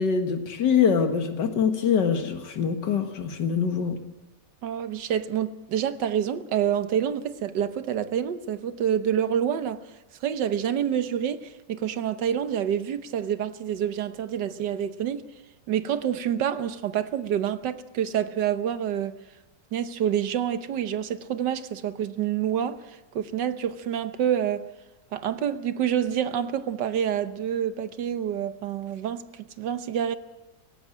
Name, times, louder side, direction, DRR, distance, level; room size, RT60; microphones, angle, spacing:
voice 1, 0.0-4.0, left 6 dB, 75° left, 2.3 m, -24 dB
voice 2, 4.6-9.8 10.2-15.2 15.7-19.2 19.7-24.7 25.1-30.2, right 9 dB, 75° right, 1.6 m, -27 dB
18.5 x 16.5 x 8.7 m
omnidirectional pair, 1.9 m